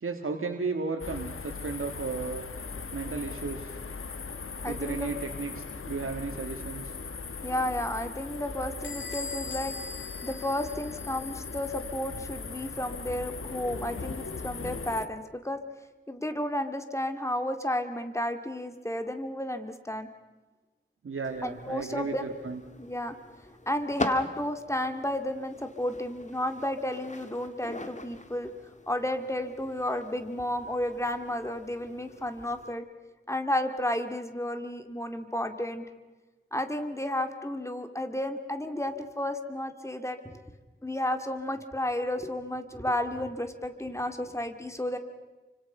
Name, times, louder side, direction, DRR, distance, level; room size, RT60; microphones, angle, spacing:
voice 1, 0.0-2.5 2.9-3.8 4.7-6.9 21.0-22.6, right 4 dB, 85° right, 3 dB, 1.9 m, -34 dB
sound 1, 1.0-15.1, left 4 dB, 90° left, 1.2 m, -39 dB
voice 2, 4.6-5.1 7.4-9.7 10.2-15.6 16.1-20.1 21.4-22.3 22.8-23.1 23.7-28.5 28.9-32.9 33.3-35.8 36.5-40.4 40.8-45.0, left 1 dB, 15° left, 7 dB, 2.3 m, -32 dB
Bell / Squeak, 8.8-11.4, left 3 dB, 65° left, 2.8 m, -41 dB
sound 2, 21.2-32.7, left 2 dB, 35° left, 2.0 m, -43 dB
29.5 x 25.5 x 5.6 m, 1.2 s
wide cardioid pair, 75°, 21 cm